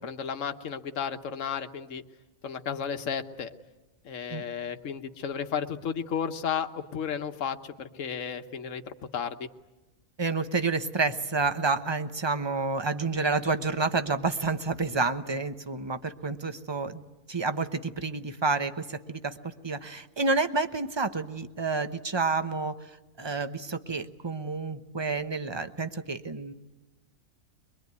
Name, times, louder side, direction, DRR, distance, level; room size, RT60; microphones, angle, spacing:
voice 1, 0.0-2.0 2.4-3.5 4.0-9.5, left 7 dB, 65° left, 8 dB, 1.4 m, -33 dB
voice 2, 10.2-17.0 17.3-22.8 23.2-26.5, right 4 dB, 20° right, 10 dB, 0.9 m, -29 dB
23.0 x 23.0 x 9.5 m, 1.1 s
omnidirectional pair, 1.4 m